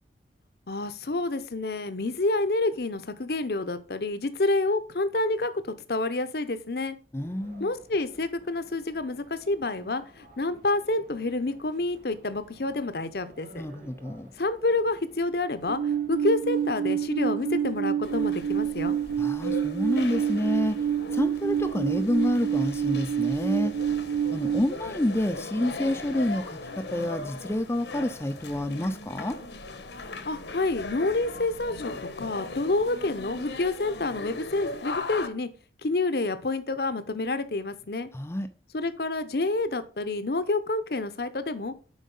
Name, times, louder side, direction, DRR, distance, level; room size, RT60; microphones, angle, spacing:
voice 1, 0.7-7.0 7.6-13.7 14.4-19.0 30.2-35.5 35.8-38.1 38.7-41.7, left 2 dB, 55° left, 0.8 m, -28 dB
voice 2, 7.1-7.7 13.5-14.3 19.2-20.8 21.1-23.7 24.3-29.4 38.1-38.5, left 1 dB, 15° left, 0.4 m, -28 dB
sound 1, 7.2-25.6, right 1 dB, 45° right, 2.8 m, -55 dB
Alarm, 15.7-24.6, right 8 dB, 70° right, 0.4 m, -27 dB
sound 2, 18.0-35.3, left 3 dB, 75° left, 1.1 m, -39 dB
7.3 x 5.2 x 5.4 m
head